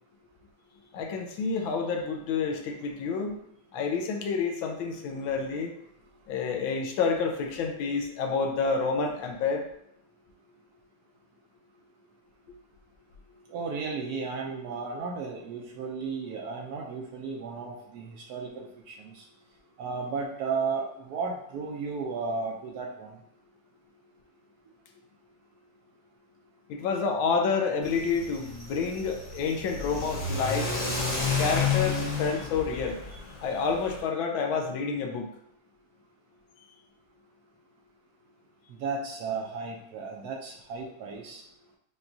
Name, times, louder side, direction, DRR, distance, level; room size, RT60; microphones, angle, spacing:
voice 1, 0.9-3.4 3.7-5.7 6.3-9.6 26.7-30.7 31.4-33.0 33.4-35.3, left 5 dB, 80° left, 3 dB, 1.4 m, -29 dB
voice 2, 13.5-19.2 19.8-23.1 38.8-41.4, right 4 dB, 75° right, 0 dB, 0.9 m, -34 dB
Car / Accelerating revving vroom, 27.8-34.0, left 4 dB, 50° left, 1.5 m, -31 dB
5.8 x 2.3 x 2.6 m, 0.75 s
omnidirectional pair, 2.2 m